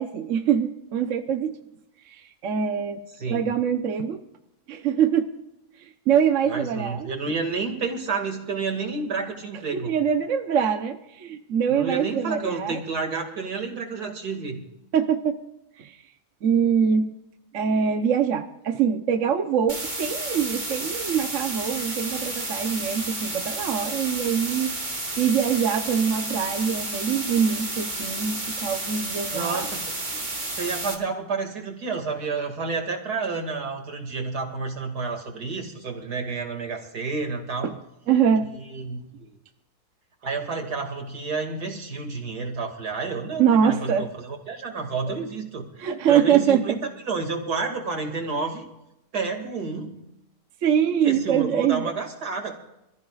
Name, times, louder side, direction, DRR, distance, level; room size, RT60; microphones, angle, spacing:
voice 1, 0.0-1.6 2.1-3.0 3.3-4.2 4.7-5.3 6.1-7.1 9.7-12.8 14.9-15.4 15.8-16.0 16.4-17.1 17.5-24.7 25.2-29.7 37.6-37.7 38.1-38.4 43.4-44.1 45.8-46.6 50.6-51.9, right 8 dB, 55° right, 7 dB, 1.1 m, -23 dB
voice 2, 6.5-9.9 11.7-14.6 29.3-30.0 30.6-37.7 38.6-39.3 40.2-45.7 46.1-46.8 47.1-48.7 49.1-49.9 51.0-52.5, right 4 dB, 75° right, 3 dB, 2.8 m, -30 dB
sound 1, 19.7-30.9, right 2 dB, 30° right, 2.3 m, -31 dB
27.0 x 14.5 x 2.4 m, 0.87 s
omnidirectional pair, 1.7 m